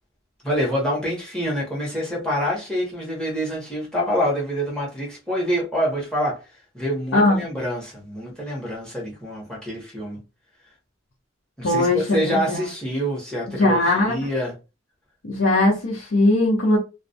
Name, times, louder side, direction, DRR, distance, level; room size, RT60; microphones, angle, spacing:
voice 1, 0.4-6.4 6.7-10.2 11.6-14.5, equal, 5° left, 0.9 m, -26 dB
voice 2, 7.1-7.5 11.6-12.6 13.6-14.2 15.2-16.8, left 2 dB, 85° left, 0.7 m, -19 dB
2.3 x 2.1 x 2.6 m
head